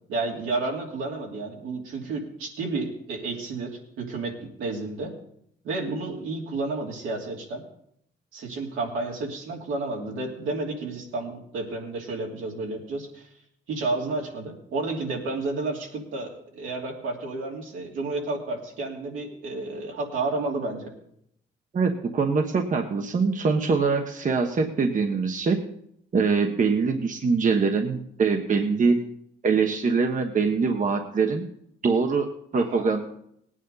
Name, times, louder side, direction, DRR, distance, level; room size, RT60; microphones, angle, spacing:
voice 1, 0.1-5.1 5.6-7.6 8.3-13.3 13.7-20.9 32.5-32.8, right 3 dB, 85° right, -1 dB, 3.1 m, -31 dB
voice 2, 21.7-25.6 26.1-29.0 29.4-31.5 31.8-33.0, right 4 dB, 40° right, 4 dB, 1.2 m, -23 dB
18.5 x 9.4 x 4.0 m, 0.70 s
cardioid pair, 90°, 20 cm